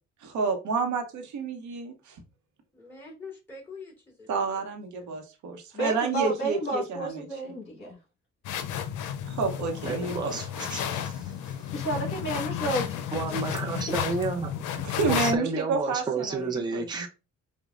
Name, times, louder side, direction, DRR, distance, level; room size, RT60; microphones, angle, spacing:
voice 1, 0.2-2.2 4.3-7.2 9.3-10.4 10.7-10.9 14.8-17.1, right 4 dB, 70° right, 0.9 m, -30 dB
voice 2, 2.7-4.6 5.0-5.1, left 4 dB, 5° left, 2.0 m, -45 dB
voice 3, 5.7-8.0 11.7-13.0 13.3-13.4, right 1 dB, 35° left, 1.7 m, -31 dB
sound 1, 8.4-15.3, left 9 dB, 80° left, 0.5 m, -32 dB
voice 4, 9.9-11.3 13.1-14.5 15.1-17.1, right 4 dB, 15° right, 0.6 m, -31 dB
5.0 x 2.2 x 2.4 m
cardioid pair, 90°, 30 cm